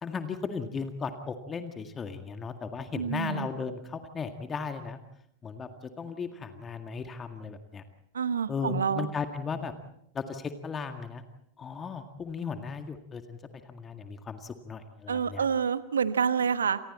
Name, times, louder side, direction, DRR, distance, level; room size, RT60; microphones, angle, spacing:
voice 1, 0.0-5.0 5.4-7.8 8.5-9.7 10.1-11.2 11.6-13.4 13.7-15.5, left 5 dB, 20° left, 7 dB, 1.9 m, -36 dB
voice 2, 2.9-3.5 8.1-9.1 15.1-16.8, right 6 dB, 70° right, 13 dB, 1.2 m, -28 dB
30.0 x 27.5 x 4.3 m, 0.73 s
figure-of-eight pair, 90°, 0 cm